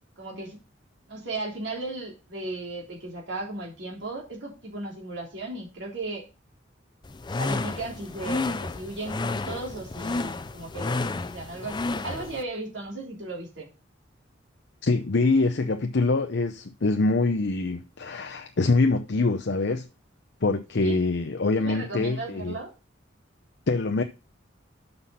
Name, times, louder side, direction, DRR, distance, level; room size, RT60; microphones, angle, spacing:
voice 1, 0.2-0.6 1.1-6.2 7.4-13.7 20.7-21.0 21.6-22.7, right 2 dB, 70° right, 3.4 m, -36 dB
sound 1, 7.0-12.4, left 3 dB, 25° left, 0.5 m, -31 dB
voice 2, 14.8-19.9 20.4-22.6 23.7-24.0, left 3 dB, 65° left, 0.7 m, -24 dB
6.7 x 5.8 x 5.5 m
head